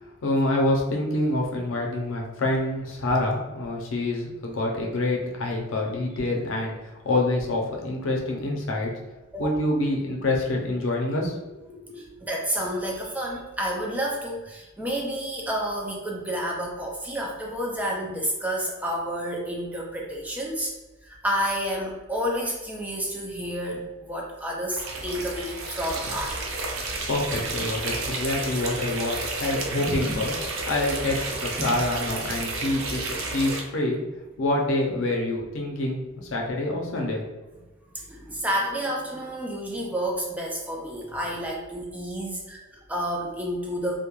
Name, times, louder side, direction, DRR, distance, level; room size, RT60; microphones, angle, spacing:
voice 1, 0.0-8.9 9.4-12.0 27.1-30.3 30.7-34.0 34.4-37.2, left 2 dB, 70° left, -1 dB, 0.5 m, -26 dB
voice 2, 11.9-20.7 21.0-26.6 29.8-30.2 31.6-31.8 37.9-44.0, equal, 10° right, -2 dB, 0.3 m, -30 dB
sound 1, 24.7-33.6, right 3 dB, 80° right, 0.5 m, -31 dB
2.3 x 2.1 x 3.0 m, 1.1 s
head